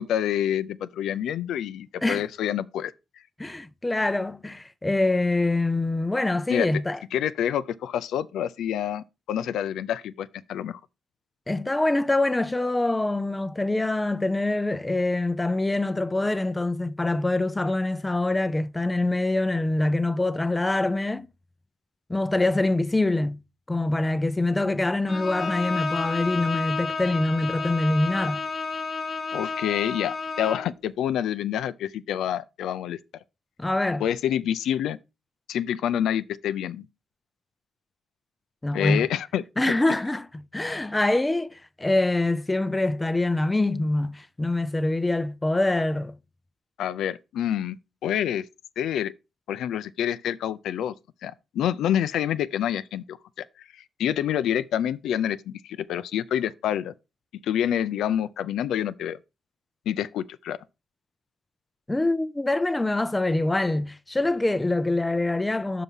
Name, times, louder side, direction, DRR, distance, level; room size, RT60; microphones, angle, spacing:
voice 1, 0.0-2.9 6.5-6.7 7.1-10.8 29.3-33.0 34.0-35.0 35.5-36.9 38.7-39.4 46.8-48.5 48.8-49.1 49.5-50.9 51.2-53.5 53.7-56.9 57.4-59.2 59.9-60.6, left 10 dB, 80° left, 0.4 m, -27 dB
voice 2, 3.4-7.0 11.5-21.3 22.1-23.4 23.7-28.4 33.6-34.0 38.6-39.1 39.6-46.2 61.9-65.8, left 2 dB, 15° left, 0.4 m, -25 dB
Bowed string instrument, 25.1-30.8, left 4 dB, 40° left, 1.0 m, -31 dB
5.4 x 4.7 x 5.5 m
cardioid pair, 95°, 0 cm